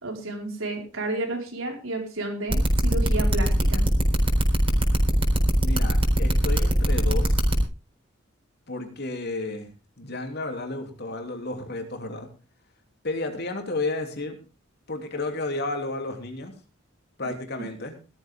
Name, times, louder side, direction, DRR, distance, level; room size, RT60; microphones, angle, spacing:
voice 1, 0.0-3.8, right 2 dB, 85° right, 2 dB, 5.0 m, -31 dB
sound 1, 2.5-7.6, right 1 dB, 30° right, 4.1 m, -23 dB
voice 2, 5.6-7.4 8.7-9.7 10.0-12.3 13.0-14.4 14.9-16.5 17.2-17.9, left 2 dB, 55° left, 5 dB, 3.0 m, -32 dB
16.0 x 13.0 x 3.7 m, 0.31 s
head